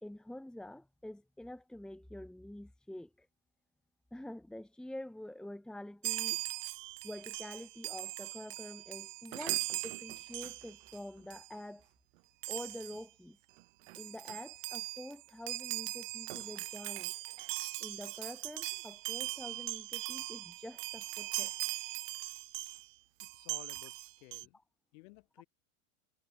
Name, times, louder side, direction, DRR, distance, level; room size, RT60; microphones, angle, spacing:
voice 1, 0.0-3.3 4.1-6.4 7.0-11.9 12.5-13.4 13.9-17.1 17.8-21.5, left 1 dB, ahead, 1.5 m, -47 dB
Chime, 6.0-11.0 11.3-11.5 12.4-13.0 13.6-13.7 13.9-22.9 23.2-24.4, right 22 dB, 75° right, 0.6 m, -40 dB
voice 2, 23.2-24.6 24.9-25.5, left 26 dB, 65° left, 6.3 m, -55 dB
supercardioid pair, 120°, 39 cm